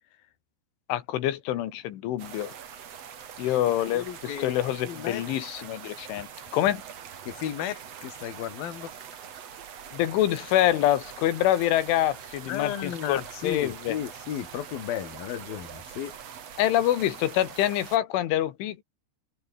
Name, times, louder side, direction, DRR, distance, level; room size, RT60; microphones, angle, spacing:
voice 1, 0.9-2.5 3.4-6.3 6.5-6.8 9.9-14.0 16.6-18.8, left 13 dB, 90° left, 4.2 m, -26 dB
sound 1, 2.2-18.0, right 8 dB, 45° right, 2.3 m, -43 dB
voice 2, 3.9-4.6 4.9-5.2 6.2-6.3 7.3-8.9 12.5-16.2, left 10 dB, 55° left, 3.9 m, -34 dB
omnidirectional pair, 5.5 m